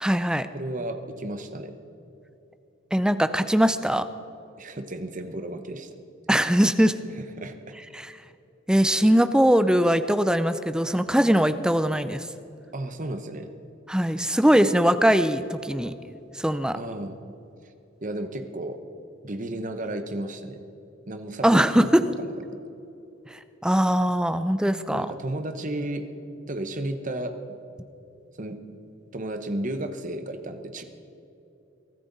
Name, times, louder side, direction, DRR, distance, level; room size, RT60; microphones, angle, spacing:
voice 1, 0.0-0.5 2.9-4.0 6.3-6.9 7.9-8.1 8.7-12.3 13.9-15.9 16.4-16.8 21.4-22.0 23.6-25.1, equal, 5° right, 11 dB, 0.5 m, -21 dB
voice 2, 0.5-1.8 4.6-5.9 7.4-7.7 12.7-13.5 16.7-17.2 18.0-18.8 19.2-20.6 21.1-21.8 22.2-22.6 24.9-26.1 26.5-27.3 28.4-28.6 29.1-30.8, right 1 dB, 40° right, 7 dB, 1.0 m, -33 dB
23.0 x 13.5 x 4.1 m, 2.9 s
head